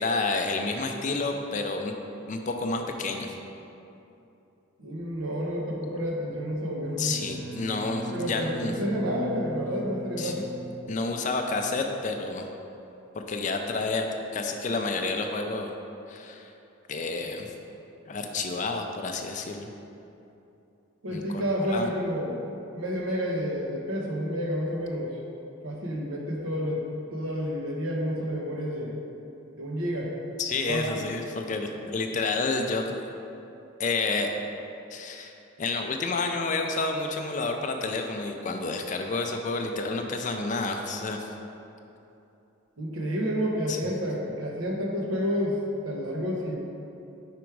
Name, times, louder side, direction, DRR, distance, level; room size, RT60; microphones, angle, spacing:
voice 1, 0.0-1.9 2.3-3.3 7.0-8.7 10.2-10.5 10.9-12.5 13.3-14.1 14.3-15.8 16.1-16.5 16.9-17.5 18.1-19.7 21.1-21.4 21.7-21.9 30.4-33.0 33.8-34.3 34.9-35.3 35.6-41.3 43.7-43.8, left 3 dB, 35° left, 4 dB, 0.4 m, -29 dB
voice 2, 4.8-7.2 8.1-10.4 21.0-22.4 22.7-25.1 25.6-26.8 27.1-29.0 29.6-30.1 30.7-31.0 42.8-45.6 45.8-46.6, equal, 85° right, -1 dB, 1.0 m, -30 dB
Bowed string instrument, 6.8-11.6, right 1 dB, 70° right, 0.3 m, -39 dB
5.1 x 4.8 x 4.6 m, 2.8 s
head